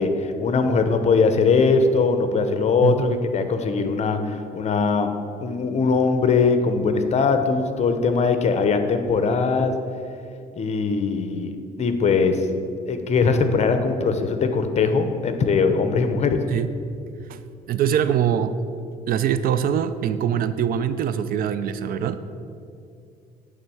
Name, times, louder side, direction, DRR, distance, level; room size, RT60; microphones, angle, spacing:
voice 1, 0.0-5.1 5.4-9.7 10.6-12.4 12.9-16.4, left 4 dB, 40° left, 8 dB, 0.7 m, -21 dB
voice 2, 17.7-18.5 19.1-22.2, right 9 dB, 60° right, 12 dB, 0.4 m, -23 dB
9.2 x 3.6 x 6.9 m, 2.4 s
cardioid pair, 110°, 17 cm